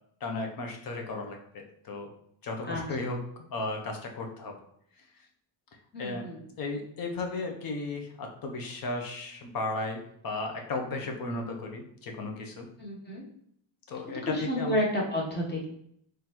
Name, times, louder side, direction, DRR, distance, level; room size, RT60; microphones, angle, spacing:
voice 1, 0.2-2.1 2.4-4.6 6.0-6.3 6.6-12.7 13.9-14.8, left 3 dB, 45° left, 3 dB, 0.7 m, -35 dB
voice 2, 5.9-6.5 12.8-13.2 14.2-15.7, left 1 dB, 20° left, -3 dB, 0.9 m, -30 dB
3.8 x 3.2 x 2.9 m, 0.67 s
wide cardioid pair, 180°, 47 cm